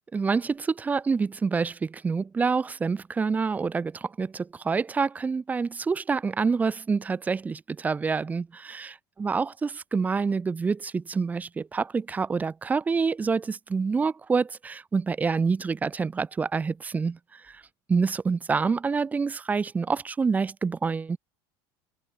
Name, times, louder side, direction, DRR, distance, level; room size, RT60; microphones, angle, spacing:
voice 1, 0.1-17.6 17.9-21.2, right 5 dB, 10° right, 0.6 m, -27 dB
cardioid pair, 160°, 12 cm